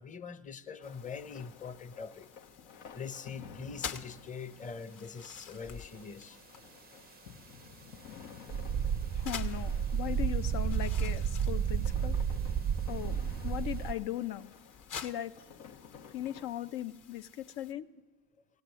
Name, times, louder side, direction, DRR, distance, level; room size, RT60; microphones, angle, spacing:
voice 1, 0.0-2.3 2.9-6.4 8.9-9.0, left 6 dB, 20° left, 0.7 m, -43 dB
sound 1, 0.8-16.5, left 6 dB, 90° left, 1.1 m, -53 dB
sound 2, 0.8-17.7, left 7 dB, 45° left, 1.0 m, -50 dB
sound 3, 8.5-13.9, right 8 dB, 25° right, 0.4 m, -31 dB
voice 2, 9.1-12.2 12.9-13.2 13.4-14.5 15.0-15.3 16.1-17.9, left 12 dB, 70° left, 0.7 m, -38 dB
16.5 x 7.9 x 9.1 m
supercardioid pair, 80°, 42 cm